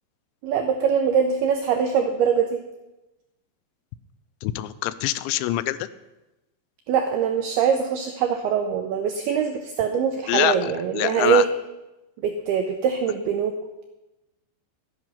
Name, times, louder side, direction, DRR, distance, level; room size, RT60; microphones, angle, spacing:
voice 1, 0.4-2.6 6.9-11.5 12.2-13.5, right 7 dB, 85° right, 6 dB, 2.2 m, -23 dB
voice 2, 4.4-5.9 10.3-11.4, left 15 dB, 85° left, 14 dB, 2.8 m, -25 dB
12.0 x 10.5 x 5.6 m, 1.0 s
omnidirectional pair, 5.4 m